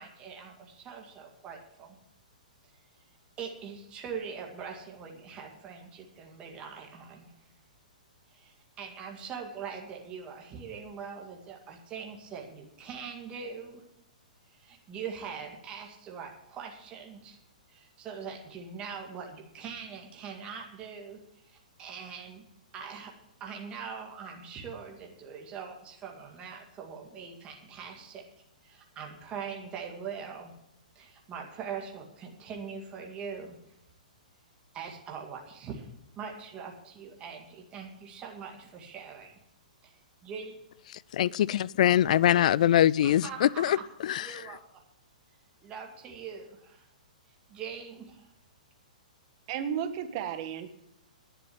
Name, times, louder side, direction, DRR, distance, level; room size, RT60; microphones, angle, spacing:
voice 1, 0.0-2.0 3.4-7.3 8.3-13.8 14.5-17.4 17.7-22.4 22.7-23.1 23.4-28.2 28.6-30.5 31.0-33.6 34.7-35.9 36.2-39.3 39.8-39.9 40.2-40.6 43.0-43.8 44.2-44.8 45.6-46.9 47.5-48.3, right 6 dB, 25° right, 1 dB, 2.0 m, -42 dB
voice 2, 40.9-44.4, left 11 dB, 60° left, 23 dB, 0.4 m, -24 dB
voice 3, 49.5-50.7, right 8 dB, 45° right, 8 dB, 1.5 m, -33 dB
11.0 x 7.0 x 9.3 m, 0.81 s
hypercardioid pair, 135°, 4 cm